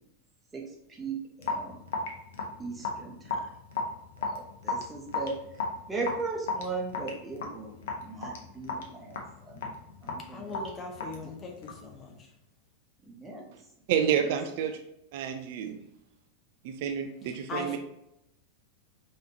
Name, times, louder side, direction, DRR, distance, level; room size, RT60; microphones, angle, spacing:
voice 1, 1.0-1.8 2.6-3.2 4.3-5.4 5.9-7.7 8.0-9.1 9.5-9.7 10.0-10.5 11.2-11.3 13.1-13.4, right 4 dB, 15° right, -1 dB, 0.9 m, -37 dB
Raindrop / Drip, 1.4-11.9, left 4 dB, 60° left, 0.7 m, -36 dB
voice 2, 10.3-12.1 17.5-17.8, left 3 dB, 25° left, 2 dB, 0.8 m, -39 dB
voice 3, 13.9-14.8 15.1-15.8 16.6-17.8, right 8 dB, 50° right, 6 dB, 0.3 m, -29 dB
5.2 x 2.8 x 2.8 m, 0.82 s
figure-of-eight pair, 90°, 0 cm